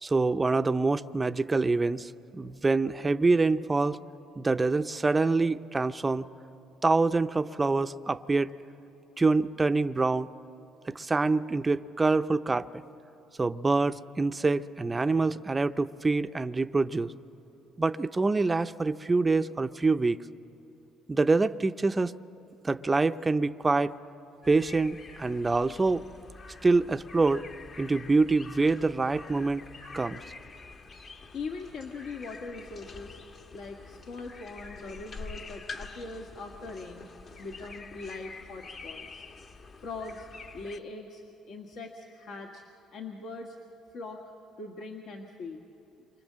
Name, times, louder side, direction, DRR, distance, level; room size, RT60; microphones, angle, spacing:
voice 1, 0.0-4.0 4.4-6.3 6.8-8.5 9.2-10.3 10.9-12.8 13.4-17.1 17.8-20.2 21.1-22.1 22.6-23.9 24.5-26.0 26.6-27.5 27.8-29.6 29.9-30.2, right 3 dB, 20° right, 11 dB, 0.6 m, -26 dB
sound 1, 24.4-40.8, left 4 dB, 40° left, 1.3 m, -46 dB
voice 2, 30.9-33.2 33.5-37.1 37.4-39.2 39.8-40.3 40.5-42.6 42.9-43.6 43.9-44.2 44.6-45.6, left 3 dB, 65° left, 1 dB, 1.6 m, -41 dB
29.0 x 24.0 x 7.5 m, 3.0 s
cardioid pair, 105°, 0 cm